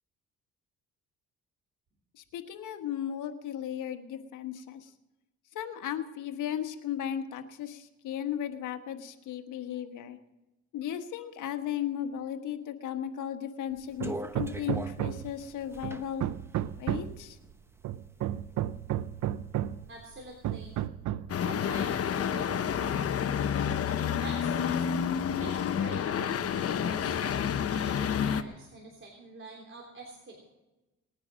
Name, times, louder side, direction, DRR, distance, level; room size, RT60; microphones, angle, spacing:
voice 1, 2.1-4.9 5.5-10.2 10.7-16.2 16.8-17.4, left 10 dB, 85° left, 7 dB, 1.4 m, -36 dB
sound 1, 13.9-17.9 18.3-19.3 19.7-20.7, right 1 dB, 10° right, 0.9 m, -43 dB
Hammer, 14.0-15.4 15.8-17.2 17.8-19.9 20.4-21.4, right 12 dB, 75° right, 0.6 m, -33 dB
voice 2, 19.9-20.7 21.4-23.0 23.5-24.9 25.4-30.4, right 3 dB, 40° right, -1 dB, 3.6 m, -46 dB
sound 2, 21.3-28.4, left 8 dB, 50° left, 0.9 m, -29 dB
19.5 x 9.6 x 6.3 m, 1.0 s
cardioid pair, 90°, 30 cm